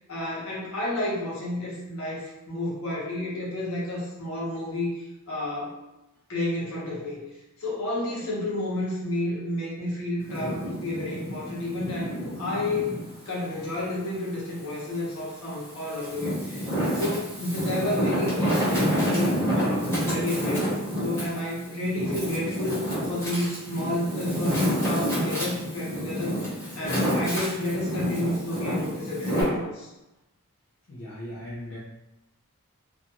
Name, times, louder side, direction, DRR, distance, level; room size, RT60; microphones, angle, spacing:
voice 1, 0.1-5.8 6.3-7.2 7.6-12.9 13.3-16.7 16.9-26.4 26.7-29.9, left 1 dB, 75° left, -6 dB, 1.0 m, -31 dB
Wind, 10.2-13.1 13.6-14.9 15.5-29.4, equal, 10° left, 0.9 m, -28 dB
voice 2, 30.9-31.8, left 1 dB, 55° left, -7 dB, 0.5 m, -38 dB
2.5 x 2.2 x 2.8 m, 0.96 s
head